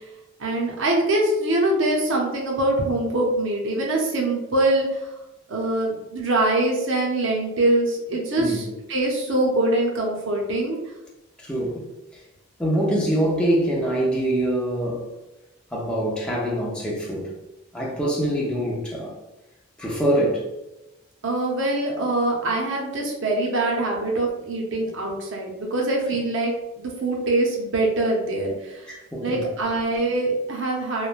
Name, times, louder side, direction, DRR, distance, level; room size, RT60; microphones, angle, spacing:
voice 1, 0.4-5.0 5.5-10.8 21.2-28.9 29.2-31.1, right 2 dB, 60° right, 0.6 m, -23 dB
voice 2, 8.4-8.7 11.4-11.9 12.1-12.2 12.6-15.1 15.7-17.3 17.7-19.1 19.8-20.5 28.9-29.5, right 1 dB, 5° left, 0.4 m, -24 dB
3.0 x 2.1 x 2.4 m
head